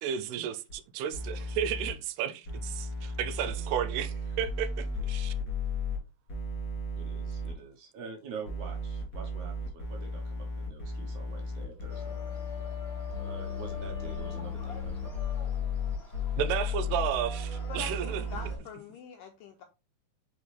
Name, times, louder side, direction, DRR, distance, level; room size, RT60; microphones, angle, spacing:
voice 1, 0.0-5.3 16.4-18.4, right 9 dB, 85° right, 2.7 m, -33 dB
sound 1, 0.7-0.8 1.1-1.9 2.5-6.0 6.3-7.5 8.5-18.6, left 3 dB, 35° left, 3.1 m, -35 dB
voice 2, 7.0-12.4 13.2-15.1, right 5 dB, 65° right, 2.2 m, -46 dB
sound 2, 11.9-18.6, left 3 dB, 60° left, 0.6 m, -45 dB
voice 3, 17.7-19.6, left 7 dB, 90° left, 1.9 m, -44 dB
5.6 x 5.1 x 3.3 m
omnidirectional pair, 4.5 m